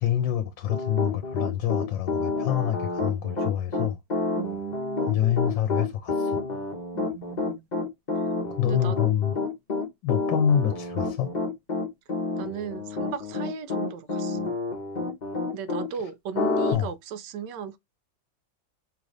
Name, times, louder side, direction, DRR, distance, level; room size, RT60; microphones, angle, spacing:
voice 1, 0.0-4.0 5.1-6.4 8.6-9.3 10.0-11.3 16.7-16.9, left 10 dB, 75° left, 1.4 m, -26 dB
Piano, 0.7-15.9 16.3-16.7, left 3 dB, 30° left, 0.9 m, -29 dB
voice 2, 4.3-5.2 6.9-7.7 8.6-9.0 12.4-14.4 15.5-17.8, right 8 dB, 75° right, 1.1 m, -36 dB
5.3 x 3.2 x 2.5 m
omnidirectional pair, 2.1 m